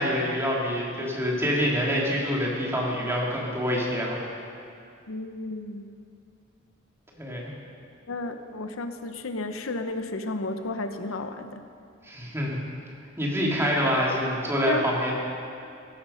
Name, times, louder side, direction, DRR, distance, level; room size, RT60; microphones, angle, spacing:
voice 1, 0.0-4.2 7.2-7.5 12.0-12.6 13.2-15.1, equal, 15° right, -3 dB, 2.7 m, -26 dB
voice 2, 5.1-5.9 8.1-11.7 14.7-14.9, left 2 dB, 80° left, 8 dB, 0.8 m, -32 dB
16.5 x 13.0 x 5.6 m, 2.5 s
head